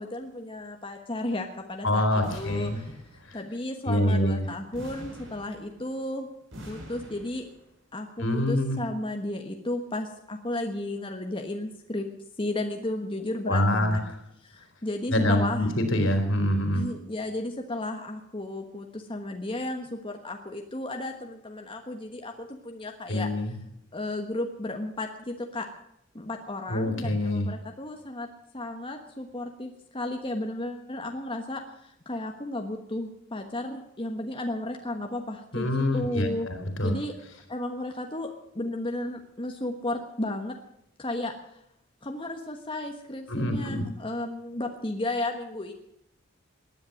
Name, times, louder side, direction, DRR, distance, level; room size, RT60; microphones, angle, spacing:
voice 1, 0.0-2.9 3.3-6.3 6.7-7.5 7.9-12.1 12.4-14.0 14.4-15.6 16.7-23.3 23.9-25.7 26.1-28.3 28.5-36.5 36.8-37.1 37.5-40.5 41.0-41.6 42.0-45.7, left 1 dB, 25° left, 3 dB, 1.3 m, -34 dB
voice 2, 1.8-2.8 3.3-3.4 3.9-4.5 8.2-8.8 13.5-14.0 15.1-16.8 23.1-23.5 26.7-27.5 35.5-36.9 43.3-43.8, left 1 dB, 70° left, 6 dB, 3.6 m, -25 dB
sound 1, 2.2-3.5 4.7-6.0 6.5-7.6, equal, 70° right, 8.0 m, -44 dB
19.0 x 10.5 x 6.5 m, 0.79 s
head